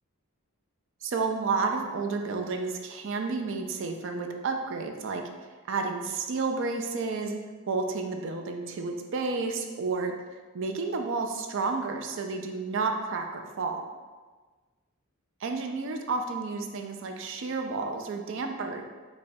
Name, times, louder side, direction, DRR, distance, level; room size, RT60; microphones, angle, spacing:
voice 1, 1.0-5.2 5.7-7.4 7.7-10.1 10.5-13.8 15.4-18.8, right 4 dB, 55° right, 4 dB, 0.4 m, -31 dB
5.1 x 2.2 x 2.7 m, 1.3 s
head